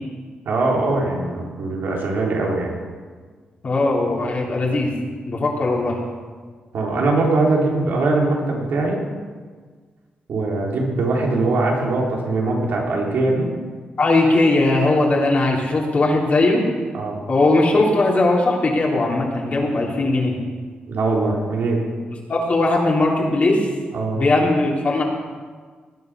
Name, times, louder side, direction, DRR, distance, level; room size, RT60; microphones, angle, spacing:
voice 1, 0.4-2.8 6.7-9.0 10.3-13.5 16.9-17.2 20.9-21.8 23.9-24.3, right 2 dB, 75° right, -1 dB, 3.8 m, -21 dB
voice 2, 3.6-4.9 5.3-6.0 14.0-16.6 17.3-20.4 22.3-23.7 24.1-25.0, left 2 dB, 45° left, -4 dB, 3.4 m, -19 dB
19.5 x 9.7 x 6.2 m, 1.5 s
cardioid pair, 90°, 3 cm